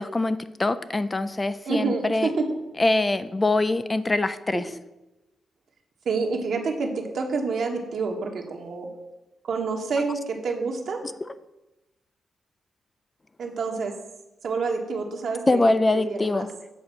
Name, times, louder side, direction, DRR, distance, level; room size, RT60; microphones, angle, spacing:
voice 1, 0.0-2.3 2.8-4.7 15.5-16.5, left 2 dB, 20° left, 13 dB, 0.3 m, -23 dB
voice 2, 1.7-2.4 4.5-4.6 6.0-8.9 9.4-11.0 13.4-13.9 14.4-16.5, right 4 dB, 65° right, 2 dB, 1.3 m, -28 dB
8.2 x 4.3 x 6.4 m, 0.99 s
cardioid pair, 115°, 0 cm